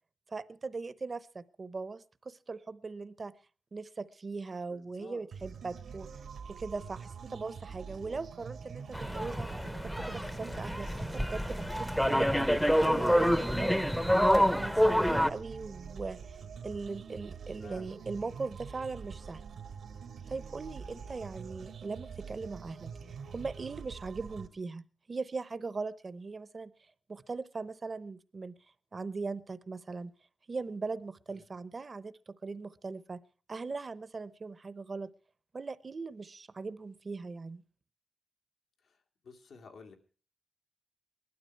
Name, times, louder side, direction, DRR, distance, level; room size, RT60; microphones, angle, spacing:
voice 1, 0.3-3.3 3.7-6.1 6.5-9.5 9.8-16.4 16.6-19.4 20.3-26.7 27.1-28.6 28.9-30.1 30.5-33.2 33.5-35.1 35.5-37.6, right 4 dB, 40° right, 16 dB, 0.8 m, -40 dB
voice 2, 4.7-5.2 17.6-18.0 20.8-21.2 31.3-31.4 38.8-39.0 39.2-39.9, left 4 dB, 85° left, 4 dB, 2.2 m, -53 dB
sound 1, 5.3-24.5, right 6 dB, 90° right, 1.9 m, -45 dB
sound 2, 8.9-15.3, equal, 5° left, 0.7 m, -27 dB
19.5 x 12.5 x 4.6 m, 0.39 s
wide cardioid pair, 120°, 0 cm